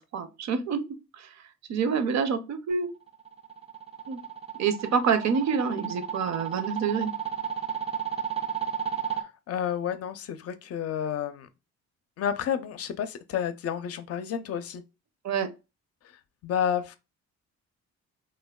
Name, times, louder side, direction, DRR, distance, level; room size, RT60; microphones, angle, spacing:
voice 1, 0.1-0.8 1.2-1.3 1.7-2.9 4.1-4.2 4.6-7.1 15.2-15.5, right 6 dB, 65° right, 0.6 m, -27 dB
sound 1, 3.1-9.2, right 8 dB, 20° right, 0.4 m, -33 dB
voice 2, 9.5-11.5 12.2-14.8 16.4-17.0, left 8 dB, 55° left, 0.5 m, -30 dB
3.3 x 2.1 x 2.2 m
cardioid pair, 90°, 30 cm